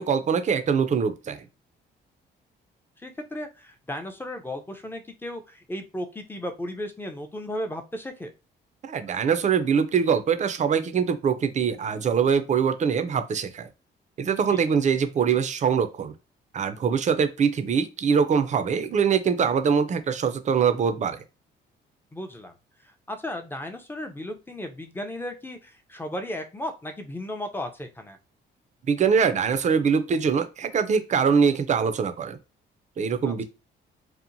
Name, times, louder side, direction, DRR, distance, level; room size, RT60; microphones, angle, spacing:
voice 1, 0.0-1.4 8.8-13.7 14.2-16.1 16.5-21.2 28.9-32.4 33.0-33.4, right 6 dB, 35° right, 10 dB, 0.4 m, -23 dB
voice 2, 3.0-8.3 14.5-14.6 22.1-22.5 23.1-28.2 33.2-33.4, left 1 dB, 10° left, 6 dB, 0.5 m, -35 dB
2.8 x 2.1 x 2.5 m, 0.29 s
cardioid pair, 90°, 20 cm